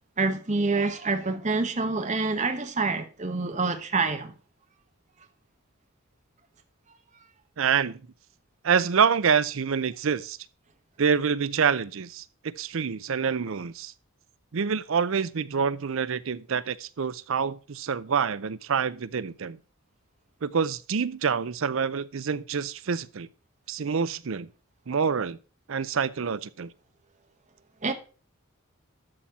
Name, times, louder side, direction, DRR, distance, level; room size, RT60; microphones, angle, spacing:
voice 1, 0.2-4.3 27.8-27.9, right 3 dB, 35° right, 1.1 m, -27 dB
voice 2, 7.6-8.0 8.6-10.4 11.0-13.9 14.5-19.6 20.4-23.3 23.7-24.5 24.9-25.4 25.7-26.7, right 6 dB, 65° right, 0.5 m, -26 dB
12.5 x 4.3 x 5.9 m
head